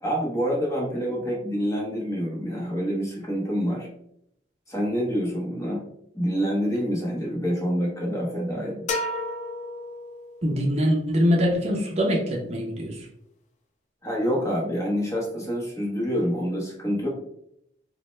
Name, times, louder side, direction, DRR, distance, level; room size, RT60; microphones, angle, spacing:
voice 1, 0.0-3.9 4.7-5.8 6.1-8.9 14.0-17.1, equal, 15° left, -2 dB, 0.8 m, -27 dB
sound 1, 8.9-10.6, left 2 dB, 40° left, 0.4 m, -31 dB
voice 2, 10.4-13.1, equal, 35° right, -1 dB, 0.6 m, -23 dB
4.1 x 2.1 x 3.1 m, 0.74 s
head